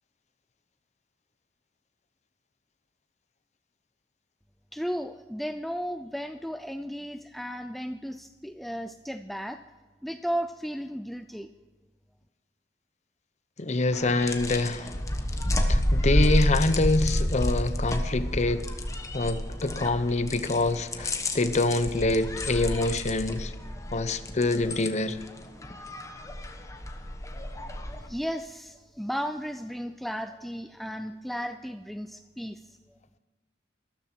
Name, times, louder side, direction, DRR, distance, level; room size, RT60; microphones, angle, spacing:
voice 1, 4.7-9.6 10.0-11.5 28.0-32.8, equal, ahead, 8 dB, 0.4 m, -34 dB
voice 2, 13.6-14.9 15.7-18.6 19.1-23.5 23.9-25.2, left 2 dB, 40° left, 12 dB, 0.8 m, -26 dB
sound 1, 13.9-28.1, left 1 dB, 20° left, 1.2 m, -30 dB
13.5 x 13.5 x 4.5 m, 1.3 s
head